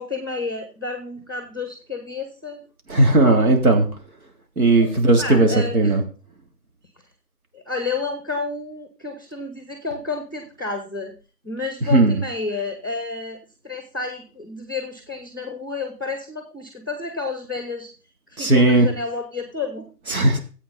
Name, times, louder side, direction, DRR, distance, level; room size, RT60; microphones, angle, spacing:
voice 1, 0.0-2.6 4.8-4.9 5.2-5.9 7.5-11.1 11.4-13.4 13.6-17.9 18.3-19.9, left 3 dB, 15° left, 6 dB, 0.9 m, -30 dB
voice 2, 2.9-3.9 4.6-6.0 11.8-12.2 18.4-18.9 20.1-20.4, right 2 dB, 60° right, 3 dB, 3.5 m, -16 dB
14.0 x 8.4 x 4.2 m, 0.36 s
figure-of-eight pair, 165°, 49 cm